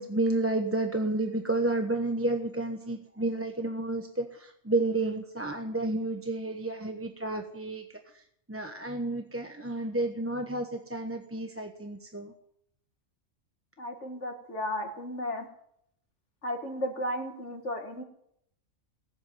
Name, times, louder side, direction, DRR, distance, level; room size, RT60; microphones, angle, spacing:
voice 1, 0.0-7.8 8.1-8.2 8.5-12.3, right 2 dB, 10° right, 4 dB, 1.0 m, -31 dB
voice 2, 13.8-15.5 16.4-18.0, left 1 dB, 60° left, 4 dB, 2.2 m, -34 dB
18.5 x 8.0 x 9.2 m, 0.74 s
omnidirectional pair, 1.4 m